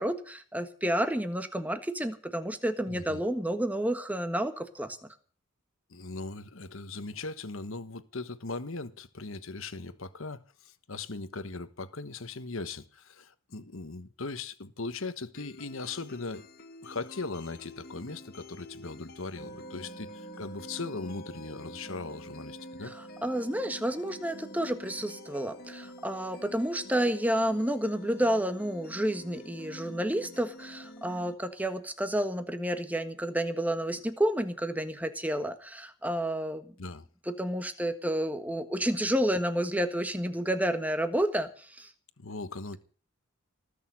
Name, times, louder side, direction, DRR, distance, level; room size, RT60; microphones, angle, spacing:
voice 1, 0.0-5.0 22.8-22.9 23.2-36.7 37.3-41.9, right 1 dB, 5° right, 1.4 m, -30 dB
voice 2, 2.9-3.2 5.9-16.5 16.8-22.9 36.8-37.0 42.2-42.8, left 3 dB, 65° left, 1.3 m, -39 dB
sound 1, 15.3-31.3, left 2 dB, 45° left, 1.5 m, -49 dB
sound 2, 19.4-31.7, right 2 dB, 20° left, 2.6 m, -50 dB
19.5 x 6.8 x 9.5 m
head